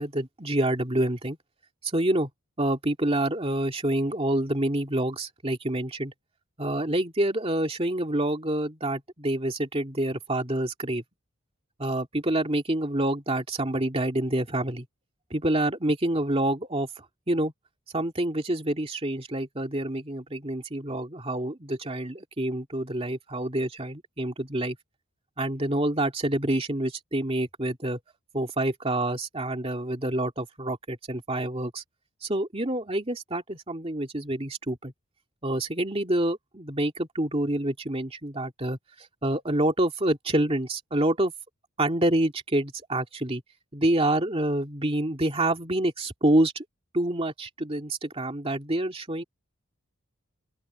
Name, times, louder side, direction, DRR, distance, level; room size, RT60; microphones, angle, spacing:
voice 1, 0.0-1.4 1.8-2.3 2.6-6.1 6.6-11.0 11.8-14.9 15.3-16.9 17.3-17.5 17.9-24.8 25.4-28.0 28.3-31.8 32.2-34.9 35.4-41.3 41.8-43.4 43.7-46.6 46.9-49.2, right 1 dB, 25° right, 2.4 m, -27 dB
open air
head